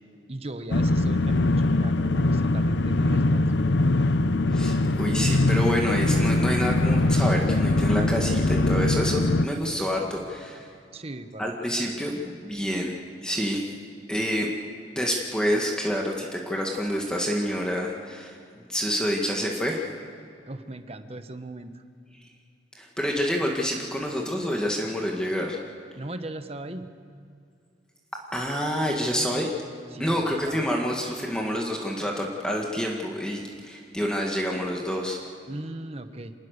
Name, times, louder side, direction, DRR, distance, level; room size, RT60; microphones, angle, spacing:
voice 1, 0.3-3.4 10.9-12.2 20.5-21.8 26.0-26.9 29.9-30.7 35.5-36.3, right 1 dB, 35° right, 9 dB, 1.2 m, -38 dB
sound 1, 0.7-9.5, left 2 dB, 90° left, 0.8 m, -22 dB
voice 2, 4.5-10.7 11.4-12.9 13.2-13.7 14.1-14.5 14.9-18.4 18.7-19.8 22.8-25.6 28.3-29.5 30.0-35.2, equal, 5° left, -1 dB, 1.9 m, -28 dB
27.0 x 19.5 x 6.7 m, 2.4 s
head